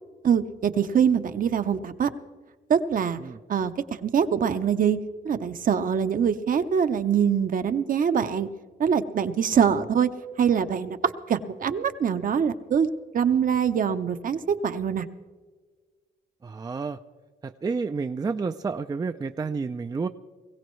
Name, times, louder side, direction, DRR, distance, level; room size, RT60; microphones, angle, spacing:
voice 1, 0.2-2.1 2.7-3.2 3.5-3.7 4.0-5.0 5.2-8.5 8.8-10.1 10.4-12.9 13.1-15.1, right 7 dB, 50° right, 10 dB, 0.7 m, -24 dB
voice 2, 16.4-17.0 17.4-20.1, right 4 dB, 20° right, 9 dB, 0.4 m, -30 dB
21.5 x 16.5 x 3.1 m, 1.4 s
cardioid pair, 100°, 18 cm